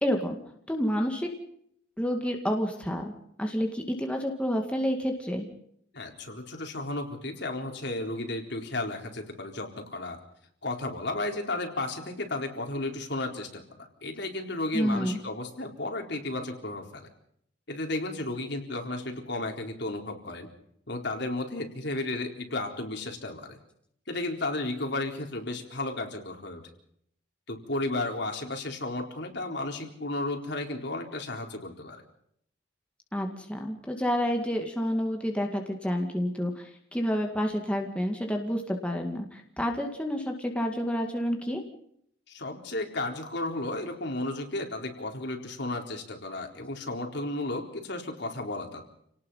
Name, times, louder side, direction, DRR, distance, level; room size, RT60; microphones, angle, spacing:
voice 1, 0.0-0.4 0.7-1.3 2.0-3.1 3.4-5.5 14.7-15.2 33.1-41.6, equal, 5° left, 2 dB, 2.2 m, -29 dB
voice 2, 5.9-10.2 10.6-17.1 17.7-20.5 20.9-23.6 24.1-26.6 27.5-32.0 42.3-48.8, left 2 dB, 60° left, 3 dB, 4.2 m, -33 dB
29.0 x 18.5 x 5.7 m, 0.70 s
head